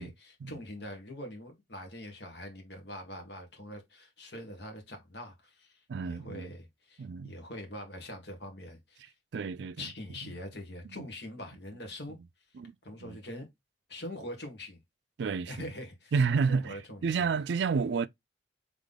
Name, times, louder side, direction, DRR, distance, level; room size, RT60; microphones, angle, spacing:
voice 1, 0.0-9.1 9.8-12.2 12.8-13.5 13.9-14.8 15.4-16.1 16.5-17.3, left 1 dB, 65° left, 1.8 m, -43 dB
voice 2, 5.9-6.5 7.0-7.3 9.3-9.9 10.8-11.1 12.5-12.7 13.0-13.2 15.2-15.7 16.1-16.8 17.0-18.1, right 5 dB, 75° right, 0.4 m, -30 dB
3.7 x 3.6 x 3.7 m
head